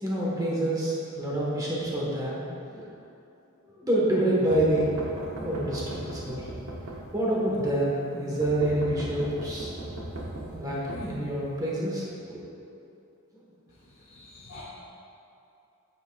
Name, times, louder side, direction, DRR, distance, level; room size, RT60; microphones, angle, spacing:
voice 1, 0.0-2.8 3.6-4.9 5.3-6.5 7.1-9.7 10.5-12.4, right 1 dB, 15° right, -5 dB, 1.5 m, -27 dB
sound 1, 4.5-7.5 8.4-11.7, right 1 dB, 80° right, 1.0 m, -38 dB
voice 2, 14.0-14.6, left 2 dB, 60° left, -7 dB, 1.0 m, -47 dB
8.9 x 7.5 x 2.5 m, 2.7 s
head